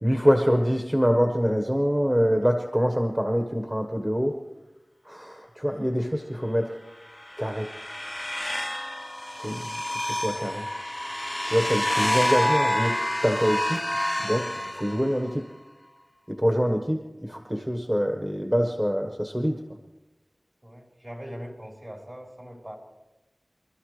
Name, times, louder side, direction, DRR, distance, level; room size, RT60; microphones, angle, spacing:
voice 1, 0.0-4.3 5.0-6.8 7.4-7.7 9.4-10.6 11.5-12.9 13.2-13.9 14.2-15.5 16.3-19.6, equal, 15° right, 4 dB, 1.3 m, -25 dB
sound 1, 7.1-15.3, left 1 dB, 15° left, 0.4 m, -28 dB
voice 2, 20.6-22.8, equal, 40° right, -1 dB, 4.3 m, -41 dB
25.5 x 13.0 x 3.3 m, 1.0 s
wide cardioid pair, 55°, 0 cm